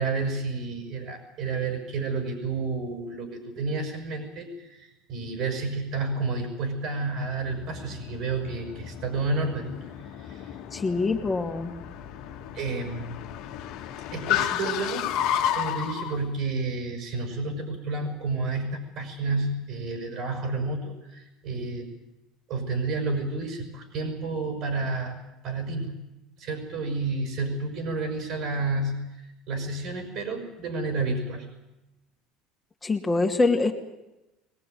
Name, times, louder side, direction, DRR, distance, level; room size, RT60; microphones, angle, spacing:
voice 1, 0.0-9.7 10.0-10.6 12.5-13.3 14.1-15.0 15.5-21.9 22.5-26.0 26.4-31.5, right 3 dB, 60° right, 4 dB, 6.0 m, -30 dB
Car, 7.2-16.2, left 11 dB, 65° left, 1.7 m, -32 dB
voice 2, 10.7-11.7 32.8-33.7, left 3 dB, 20° left, 0 dB, 2.6 m, -24 dB
22.5 x 19.0 x 9.4 m, 0.96 s
hypercardioid pair, 85°, 0 cm